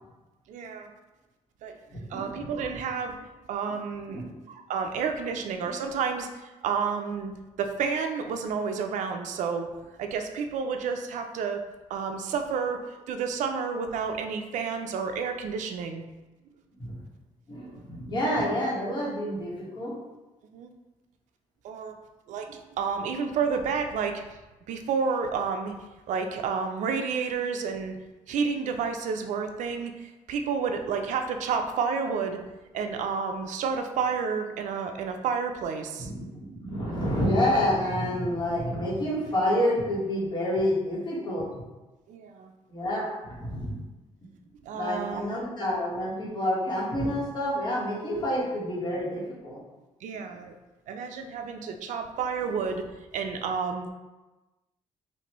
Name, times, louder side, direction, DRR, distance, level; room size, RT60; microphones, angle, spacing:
voice 1, 0.5-0.9 1.6-1.8 2.1-3.2 3.5-4.2 4.7-7.3 7.6-9.7 10.0-11.6 11.9-16.0 20.5-20.7 21.6-22.0 22.3-24.2 24.7-25.7 26.1-28.0 28.3-32.4 32.7-36.1 42.1-42.5 44.6-45.3 50.0-50.5 50.9-52.8 53.1-53.9, right 5 dB, 75° right, 5 dB, 0.4 m, -30 dB
voice 2, 1.9-2.5 4.1-4.3 16.8-17.0 17.5-19.9 36.0-41.5 42.7-43.8 44.7-49.6, left 1 dB, 35° left, -6 dB, 1.4 m, -28 dB
4.3 x 2.5 x 3.0 m, 1.1 s
cardioid pair, 140°, 13 cm